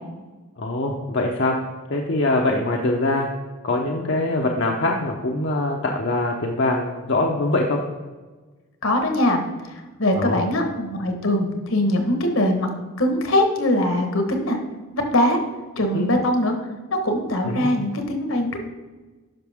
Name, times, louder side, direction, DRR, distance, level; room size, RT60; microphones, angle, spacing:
voice 1, 0.6-1.6 1.9-3.3 3.6-7.8 10.2-10.4 15.9-16.1 17.4-17.7, left 2 dB, 55° left, 0 dB, 0.7 m, -23 dB
voice 2, 8.8-9.4 9.7-12.7 13.0-14.6 14.9-15.4 15.8-16.6 17.0-18.6, left 1 dB, 70° left, 4 dB, 1.4 m, -22 dB
11.0 x 5.9 x 3.5 m, 1.3 s
head